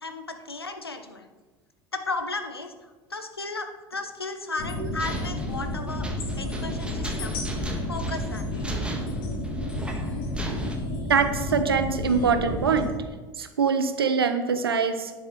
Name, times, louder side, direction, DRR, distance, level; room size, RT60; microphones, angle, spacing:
voice 1, 0.0-1.3 1.9-6.1 6.4-7.6 7.9-8.9, left 3 dB, 85° left, 7 dB, 0.8 m, -35 dB
sound 1, 4.6-12.9, left 1 dB, 65° left, 1.9 m, -31 dB
sound 2, 4.6-10.8, right 1 dB, 10° right, 1.5 m, -37 dB
voice 2, 11.1-12.9 13.4-15.1, right 6 dB, 80° right, 8 dB, 0.9 m, -23 dB
9.9 x 7.7 x 4.6 m, 1.3 s
figure-of-eight pair, 70°, 12 cm